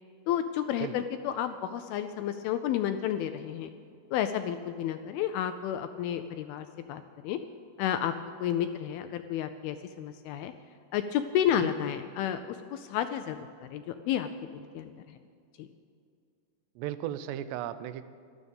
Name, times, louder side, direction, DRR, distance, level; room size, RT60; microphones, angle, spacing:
voice 1, 0.3-3.7 4.1-7.4 7.8-8.1 8.4-10.5 10.9-14.3 14.5-15.2 15.6-15.7, left 10 dB, 85° left, 9 dB, 2.2 m, -31 dB
voice 2, 16.8-18.0, right 11 dB, 90° right, 13 dB, 2.8 m, -36 dB
13.0 x 12.5 x 5.3 m, 2.4 s
omnidirectional pair, 4.8 m